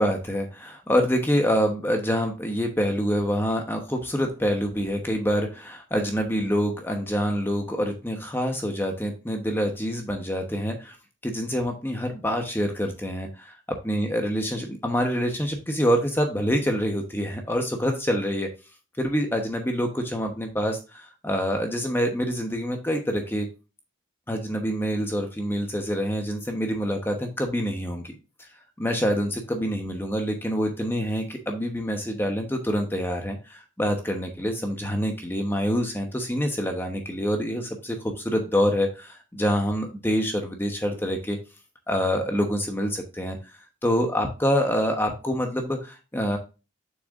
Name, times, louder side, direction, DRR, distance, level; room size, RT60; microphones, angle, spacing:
voice 1, 0.0-10.9 11.2-13.5 13.8-18.5 19.0-23.5 24.3-28.2 28.8-41.4 41.9-43.4 43.8-46.4, equal, 10° left, 3 dB, 0.9 m, -26 dB
7.7 x 6.4 x 2.5 m, 0.29 s
head